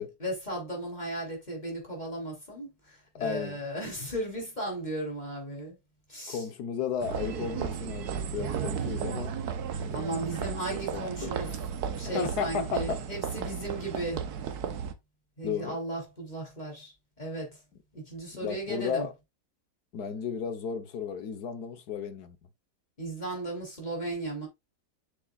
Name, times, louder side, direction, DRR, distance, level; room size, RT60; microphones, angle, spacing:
voice 1, 0.0-5.8 6.1-6.4 9.9-11.6 11.9-14.3 15.4-17.6 17.9-19.1 23.0-24.5, right 1 dB, 25° left, 3.4 m, -36 dB
voice 2, 3.1-3.6 6.3-9.3 9.8-10.1 10.7-11.3 12.1-13.0 15.4-15.8 18.4-19.1 19.9-22.4, left 7 dB, 80° left, 1.6 m, -34 dB
sound 1, 7.0-14.9, right 7 dB, 80° right, 1.4 m, -34 dB
7.6 x 6.7 x 2.4 m
omnidirectional pair, 1.7 m